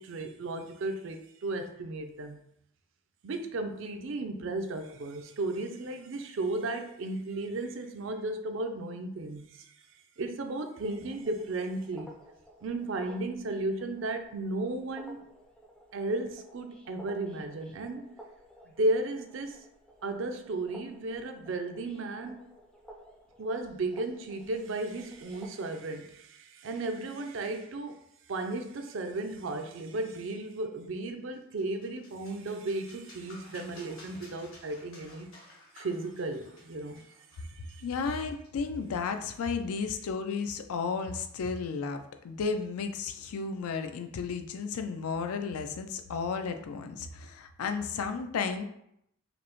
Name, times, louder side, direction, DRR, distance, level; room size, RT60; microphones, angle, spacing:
voice 1, 0.0-2.4 3.2-9.7 10.2-12.2 12.6-15.2 15.9-18.2 18.7-19.6 20.0-22.4 23.4-28.0 28.3-35.3 35.7-37.0 37.4-37.9, right 2 dB, 60° right, 0.4 m, -34 dB
sound 1, 10.9-25.5, equal, 5° left, 0.4 m, -54 dB
sound 2, 31.3-38.8, left 1 dB, 70° left, 1.4 m, -55 dB
voice 2, 37.8-42.0 42.2-48.6, left 5 dB, 90° left, 0.4 m, -33 dB
5.0 x 2.0 x 3.0 m
head